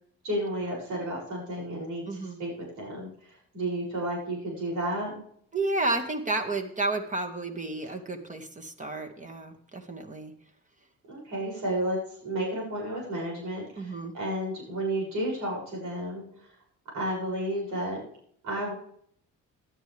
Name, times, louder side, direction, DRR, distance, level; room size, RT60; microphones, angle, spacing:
voice 1, 0.2-5.2 11.1-16.2 16.9-18.0 18.4-18.7, right 1 dB, 90° right, -3 dB, 7.2 m, -32 dB
voice 2, 2.1-2.4 5.5-10.3 13.8-14.1, right 2 dB, 25° right, 4 dB, 2.0 m, -31 dB
17.0 x 11.5 x 3.5 m, 0.64 s
cardioid pair, 90°, 30 cm